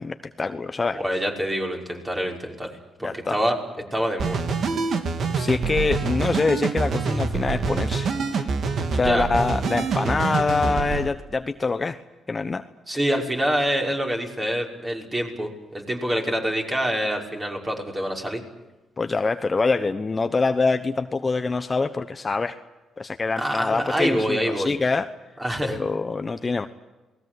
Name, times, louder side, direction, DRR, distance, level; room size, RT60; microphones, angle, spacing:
voice 1, 0.0-1.0 3.0-3.4 5.4-8.1 8.9-12.0 12.3-12.6 12.9-13.0 19.0-22.6 23.0-25.1 25.7-26.7, left 4 dB, 30° left, 9 dB, 1.1 m, -25 dB
voice 2, 0.9-3.6 3.9-4.6 9.0-9.3 12.9-18.4 23.4-24.7 25.4-25.8, equal, 20° right, 1 dB, 5.9 m, -26 dB
sound 1, 4.2-11.1, right 4 dB, 60° right, 2.6 m, -26 dB
28.0 x 20.0 x 8.0 m, 1.1 s
cardioid pair, 90°, 0 cm